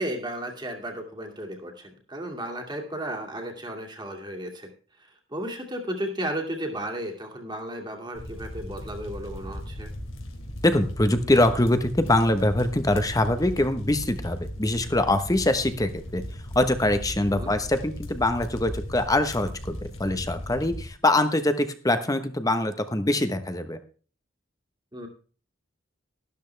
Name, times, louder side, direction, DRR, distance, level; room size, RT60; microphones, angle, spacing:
voice 1, 0.0-4.7 5.3-9.9 17.3-17.5 24.9-25.1, right 1 dB, 20° right, 2 dB, 2.3 m, -34 dB
sound 1, 8.1-20.9, equal, 85° left, 2.9 m, -37 dB
voice 2, 10.6-16.2 16.5-23.8, left 1 dB, 20° left, 9 dB, 1.0 m, -23 dB
13.0 x 12.5 x 3.4 m, 0.39 s
head